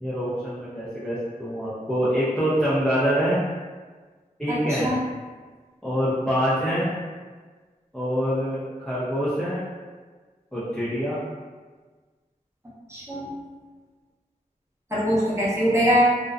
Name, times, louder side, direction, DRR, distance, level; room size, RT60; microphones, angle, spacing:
voice 1, 0.0-3.4 4.4-4.9 5.8-6.9 7.9-8.6 8.8-9.6 10.5-11.2, equal, 5° left, -10 dB, 0.6 m, -25 dB
voice 2, 4.5-5.0 12.9-13.3 14.9-16.0, equal, 20° right, -9 dB, 0.9 m, -22 dB
2.5 x 2.1 x 2.4 m, 1.4 s
wide cardioid pair, 45°, 15 cm